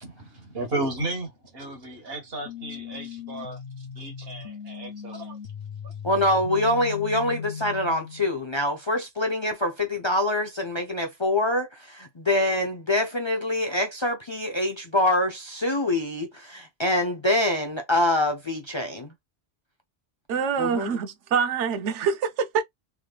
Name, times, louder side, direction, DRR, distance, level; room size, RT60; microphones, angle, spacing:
voice 1, 0.0-5.4 5.8-5.9, right 2 dB, 60° right, 1.6 m, -34 dB
sound 1, 2.5-8.4, left 7 dB, 65° left, 0.9 m, -38 dB
voice 2, 6.0-19.1 20.6-20.9, left 1 dB, 35° left, 0.5 m, -25 dB
voice 3, 20.3-22.6, right 6 dB, 90° right, 1.0 m, -25 dB
3.5 x 3.2 x 2.3 m
omnidirectional pair, 1.2 m